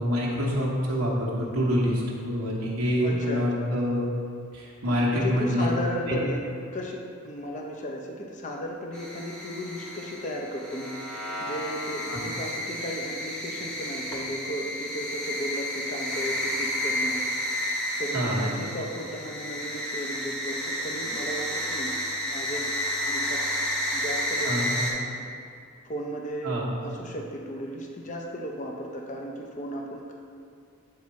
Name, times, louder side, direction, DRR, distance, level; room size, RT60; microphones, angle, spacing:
voice 1, 0.0-4.0 4.5-5.7 6.1-6.2 12.1-12.2 18.1-18.4 24.4-24.7 26.4-26.7, equal, 85° right, -5 dB, 1.0 m, -26 dB
voice 2, 3.0-3.7 5.1-17.3 18.0-22.0 22.3-22.7 23.1-23.4 23.9-25.3 25.8-30.1, equal, 35° left, 0 dB, 0.5 m, -35 dB
sound 1, 8.9-24.9, equal, 5° left, 0.9 m, -31 dB
7.9 x 3.6 x 4.1 m, 2.4 s
head